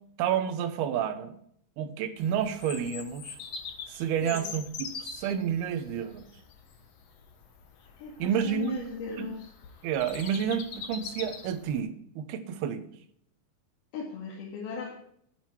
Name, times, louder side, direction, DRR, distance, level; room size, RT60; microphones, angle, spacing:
voice 1, 0.2-1.4 1.8-3.4 3.9-6.2 8.2-8.8 9.2-9.3 9.8-12.9, right 8 dB, 85° right, 10 dB, 2.9 m, -30 dB
Bird vocalization bird call bird song, 2.2-11.8, left 6 dB, 60° left, 1.9 m, -43 dB
voice 2, 8.0-9.5 13.9-14.9, left 5 dB, 80° left, -3 dB, 3.8 m, -37 dB
11.0 x 10.5 x 4.5 m, 0.68 s
omnidirectional pair, 4.4 m